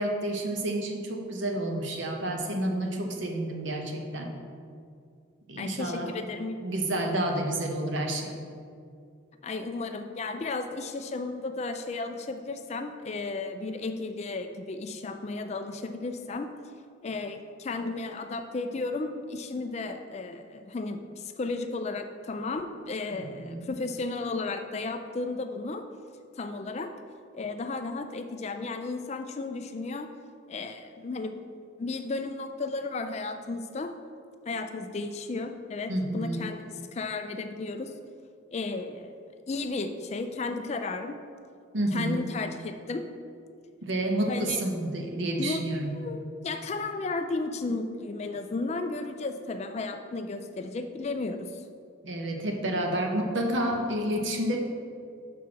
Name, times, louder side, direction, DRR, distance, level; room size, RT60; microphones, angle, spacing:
voice 1, 0.0-4.3 5.5-6.1 6.6-8.4 23.1-23.7 35.9-36.5 41.7-42.2 43.8-45.9 52.0-54.6, right 1 dB, 65° right, 2 dB, 1.0 m, -30 dB
voice 2, 5.6-6.7 9.4-16.5 17.0-25.9 26.4-26.9 27.3-30.1 30.5-31.4 31.8-33.9 34.5-37.9 38.5-39.2 39.5-41.2 41.9-43.0 44.3-44.6 45.4-45.6 45.9-51.6, left 3 dB, 30° left, 7 dB, 0.3 m, -34 dB
6.0 x 4.6 x 6.2 m, 2.3 s
head